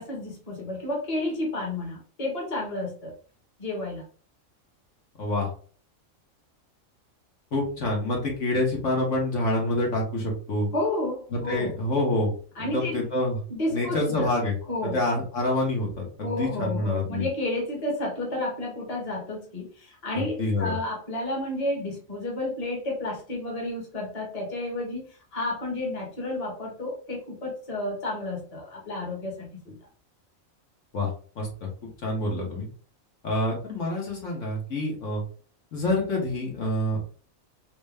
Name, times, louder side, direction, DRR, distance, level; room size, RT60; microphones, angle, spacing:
voice 1, 0.0-3.1 3.6-4.0 10.7-11.7 12.6-13.0 13.5-14.3 14.7-15.0 16.2-25.0 25.3-29.7, left 2 dB, 30° left, -1 dB, 1.1 m, -31 dB
voice 2, 7.5-10.7 11.3-12.3 12.6-13.4 13.7-14.6 14.9-15.9 16.2-17.2 20.1-20.8 30.9-31.1 31.3-31.7 32.0-32.7 33.2-35.2 35.7-37.1, left 1 dB, 70° left, -2 dB, 1.6 m, -27 dB
3.9 x 2.1 x 3.4 m, 0.41 s
omnidirectional pair, 1.4 m